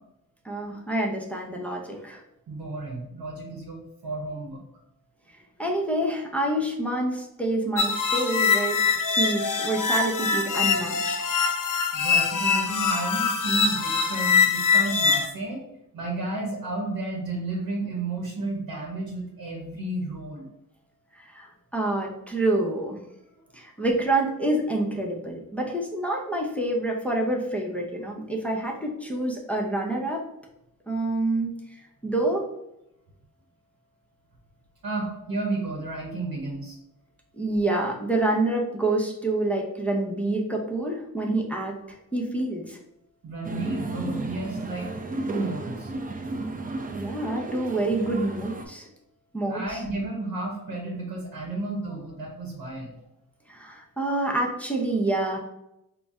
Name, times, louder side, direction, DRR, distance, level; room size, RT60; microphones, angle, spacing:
voice 1, 0.4-2.2 5.6-11.2 21.2-23.0 23.5-30.2 30.9-31.6 32.0-32.4 37.4-42.8 46.9-48.9 49.3-49.8 53.5-55.4, right 2 dB, 5° left, -1 dB, 0.7 m, -27 dB
voice 2, 2.5-4.6 11.9-15.6 15.9-20.5 34.8-36.8 43.2-44.9 45.3-45.9 49.5-52.9, right 2 dB, 85° right, -1 dB, 0.9 m, -32 dB
sound 1, 7.8-15.3, left 5 dB, 65° left, 0.6 m, -23 dB
sound 2, 43.4-48.7, right 2 dB, 25° right, 0.5 m, -34 dB
4.1 x 2.1 x 3.5 m, 0.85 s
cardioid pair, 65°, 34 cm